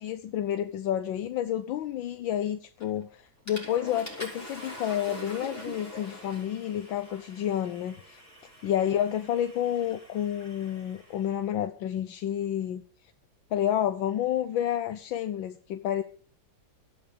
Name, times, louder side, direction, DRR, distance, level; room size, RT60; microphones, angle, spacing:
voice 1, 0.0-8.2 8.6-12.8 13.5-16.0, left 10 dB, 80° left, 1.6 m, -30 dB
Water / Toilet flush, 2.8-3.1 3.5-11.3, left 1 dB, 5° left, 6.0 m, -44 dB
14.0 x 12.0 x 5.1 m
omnidirectional pair, 2.1 m